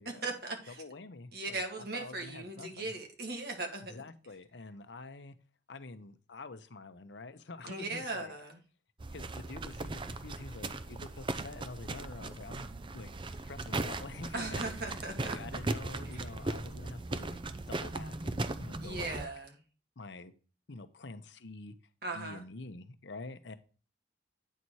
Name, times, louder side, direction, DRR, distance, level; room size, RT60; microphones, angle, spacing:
voice 1, 0.1-0.8 1.3-3.9 7.7-8.6 14.3-15.6 16.1-16.2 18.8-19.6 22.0-22.4, right 2 dB, 60° right, 3 dB, 2.0 m, -38 dB
voice 2, 0.7-2.9 3.9-5.4 5.7-8.3 9.1-12.7 12.9-14.6 14.9-19.3 20.0-20.3 20.7-21.7 22.1-23.6, left 3 dB, 75° left, 11 dB, 0.8 m, -47 dB
sound 1, 9.0-19.3, right 2 dB, 25° right, 0.5 m, -38 dB
9.2 x 4.2 x 4.6 m, 0.36 s
head